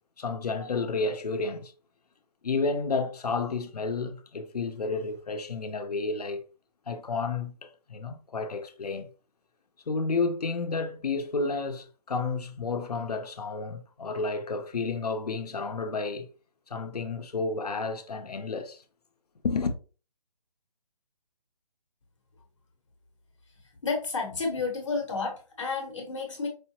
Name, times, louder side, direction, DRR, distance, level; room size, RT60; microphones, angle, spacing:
voice 1, 0.2-1.7 2.4-6.5 6.9-9.1 9.9-16.3 16.7-18.8 19.4-19.8, left 4 dB, 70° left, 0.8 m, -31 dB
voice 2, 23.8-26.5, left 4 dB, 50° left, 1.1 m, -31 dB
4.9 x 2.1 x 2.9 m
hypercardioid pair, 175°, 21 cm